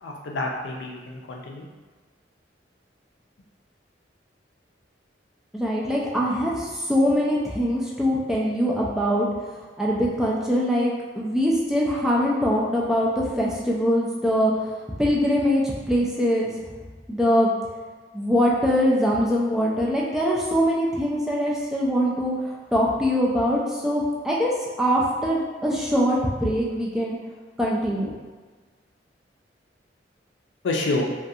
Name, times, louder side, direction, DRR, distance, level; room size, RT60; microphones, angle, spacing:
voice 1, 0.0-1.7 30.6-31.1, left 2 dB, 85° left, 0 dB, 0.4 m, -28 dB
voice 2, 5.5-9.3 9.8-14.7 15.0-15.6 15.9-16.5 17.1-17.5 18.1-24.5 24.8-27.2 27.6-28.1, equal, 5° right, -5 dB, 0.3 m, -23 dB
2.4 x 2.2 x 2.7 m, 1.4 s
head